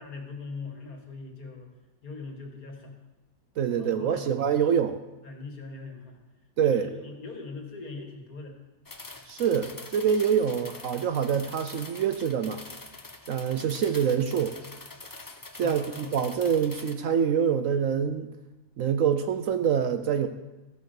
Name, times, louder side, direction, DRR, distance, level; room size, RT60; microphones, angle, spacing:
voice 1, 0.0-1.7 2.0-3.0 3.7-4.6 5.2-6.2 6.6-8.6 15.6-16.2, left 3 dB, 65° left, 2 dB, 2.3 m, -41 dB
voice 2, 3.6-5.0 6.6-6.9 9.3-12.6 13.3-14.6 15.6-18.3 18.8-20.3, right 8 dB, 65° right, 9 dB, 0.9 m, -25 dB
sound 1, 8.9-16.9, left 2 dB, 25° left, 0.4 m, -45 dB
14.0 x 8.6 x 6.5 m, 1.1 s
omnidirectional pair, 1.7 m